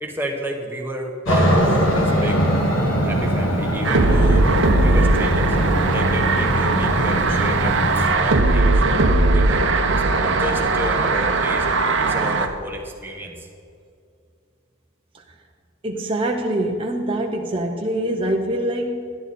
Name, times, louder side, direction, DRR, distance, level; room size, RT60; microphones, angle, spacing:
voice 1, 0.0-2.4 3.0-8.8 9.3-11.7 12.0-13.5, equal, 10° right, 1 dB, 1.0 m, -32 dB
Aircraft, 1.3-8.1, equal, 65° left, 1.8 m, -21 dB
sound 1, 3.8-12.5, right 2 dB, 60° right, 0.7 m, -19 dB
voice 2, 15.8-19.2, right 1 dB, 25° right, 1 dB, 0.6 m, -24 dB
12.0 x 10.5 x 4.1 m, 2.4 s
head